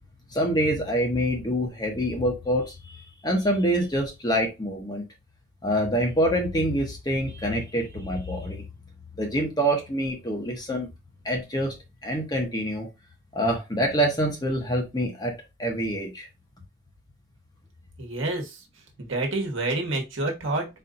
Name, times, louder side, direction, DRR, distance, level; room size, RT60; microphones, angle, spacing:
voice 1, 0.3-5.0 5.6-8.6 9.2-10.9 11.2-11.7 12.0-12.9 13.3-15.3 15.6-16.3, equal, 20° left, 1.0 m, -26 dB
voice 2, 18.0-18.6 19.0-20.7, right 2 dB, 60° right, 1.3 m, -28 dB
4.3 x 2.6 x 3.8 m
head